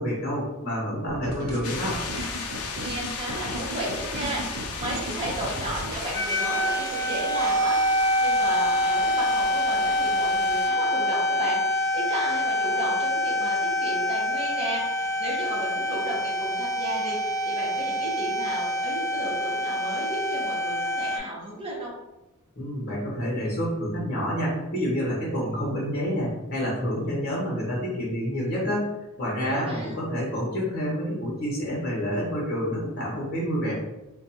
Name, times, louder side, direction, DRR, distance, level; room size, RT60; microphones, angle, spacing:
voice 1, 0.0-2.0 22.6-28.9 29.2-33.7, equal, 45° left, -5 dB, 0.9 m, -28 dB
sound 1, 1.1-6.2, right 1 dB, 80° right, 0.6 m, -35 dB
sound 2, 1.6-10.7, left 5 dB, 75° left, 0.5 m, -36 dB
voice 2, 2.8-21.9 29.4-29.9, right 1 dB, 25° right, -4 dB, 0.9 m, -34 dB
sound 3, 6.1-21.2, equal, 15° left, 0.3 m, -26 dB
2.5 x 2.3 x 4.1 m, 0.98 s
head